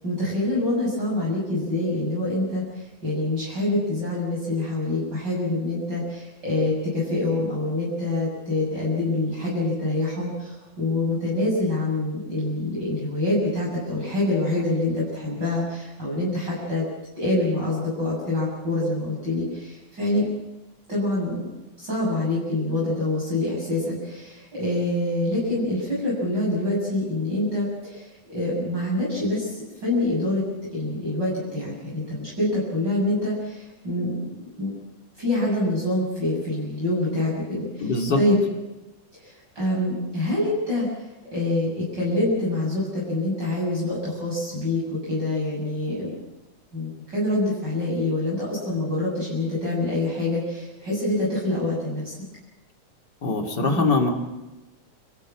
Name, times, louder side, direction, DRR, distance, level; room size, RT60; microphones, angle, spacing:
voice 1, 0.0-16.8 17.2-20.3 20.9-21.4 21.8-30.4 30.7-34.1 34.6-34.7 35.2-38.4 39.1-46.2 46.7-52.1, left 2 dB, 35° right, -6 dB, 7.9 m, -26 dB
voice 2, 37.8-38.2 53.2-54.1, left 3 dB, 35° left, 2 dB, 3.2 m, -22 dB
28.5 x 15.5 x 7.5 m, 1.0 s
omnidirectional pair, 3.5 m